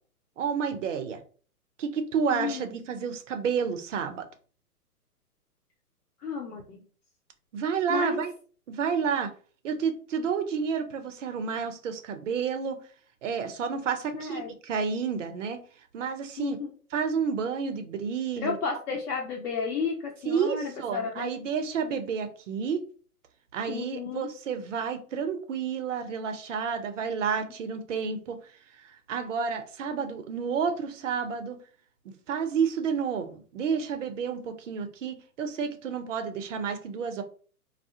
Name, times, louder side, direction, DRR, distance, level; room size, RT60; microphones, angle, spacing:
voice 1, 0.4-1.2 1.8-4.3 7.5-8.3 8.7-9.3 9.6-12.8 13.2-15.6 15.9-16.6 16.9-18.6 20.2-22.9 23.5-28.4 28.8-31.6 32.1-37.2, right 6 dB, 55° right, 0.6 m, -30 dB
voice 2, 2.3-2.8 6.2-6.8 7.9-8.2 14.1-14.5 16.4-16.7 18.4-21.3 23.7-24.3, left 5 dB, 70° left, 0.7 m, -32 dB
2.3 x 2.0 x 2.7 m
figure-of-eight pair, 125°, 46 cm